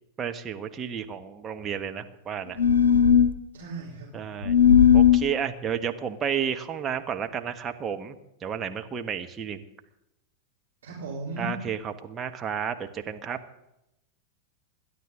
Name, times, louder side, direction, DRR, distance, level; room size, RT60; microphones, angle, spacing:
voice 1, 0.2-2.6 4.1-4.5 4.9-8.2 8.4-9.6 11.4-13.4, right 8 dB, 25° right, 6 dB, 1.4 m, -31 dB
sound 1, 2.6-3.3 4.4-5.2, left 8 dB, 70° left, 1.1 m, -17 dB
voice 2, 3.5-4.3 10.8-11.5 13.0-13.1, right 2 dB, 65° right, -5 dB, 4.0 m, -36 dB
27.0 x 11.5 x 3.9 m, 0.87 s
figure-of-eight pair, 90°, 0 cm